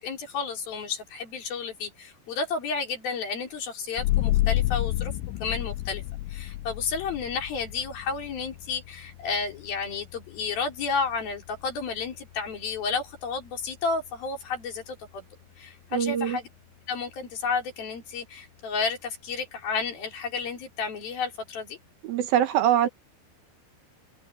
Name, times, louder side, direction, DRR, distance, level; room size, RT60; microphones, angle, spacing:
voice 1, 0.0-5.1 5.4-6.0 6.3-15.2 15.6-16.5 16.9-21.8, left 5 dB, 50° left, 5.8 m, -31 dB
sound 1, 4.0-15.2, left 16 dB, 85° left, 3.1 m, -32 dB
voice 2, 15.9-16.4 22.0-22.9, right 10 dB, 70° right, 2.5 m, -23 dB
open air
omnidirectional pair, 5.4 m